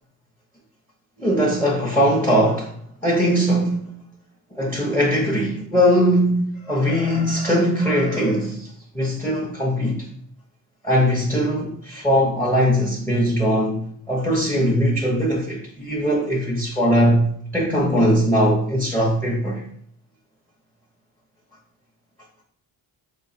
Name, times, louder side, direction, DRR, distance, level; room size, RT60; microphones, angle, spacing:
voice 1, 1.2-2.7 3.0-3.9 4.5-8.7 8.9-10.1 10.8-19.6, equal, 5° left, 0.7 m, -20 dB
4.7 x 3.0 x 2.7 m
cardioid pair, 115°, 39 cm